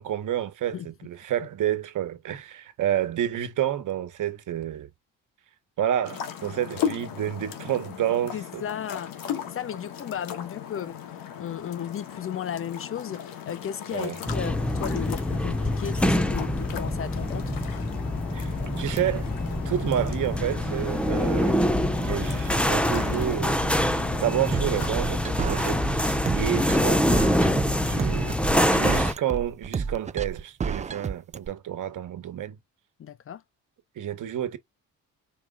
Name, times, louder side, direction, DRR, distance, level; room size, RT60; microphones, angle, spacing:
voice 1, 0.0-4.9 5.8-8.6 13.9-14.1 18.3-19.3 19.6-21.6 22.0-23.6 24.2-27.1 27.9-32.6 34.0-34.6, right 11 dB, 65° right, 1.2 m, -29 dB
sound 1, 6.0-24.9, left 9 dB, 80° left, 1.4 m, -37 dB
voice 2, 8.3-17.4 27.4-27.9 33.0-33.4, left 9 dB, 40° left, 0.6 m, -35 dB
sound 2, 14.3-29.1, left 1 dB, 5° left, 0.8 m, -25 dB
sound 3, 24.5-31.5, right 6 dB, 20° right, 0.4 m, -30 dB
4.9 x 2.3 x 3.6 m
supercardioid pair, 75°, 34 cm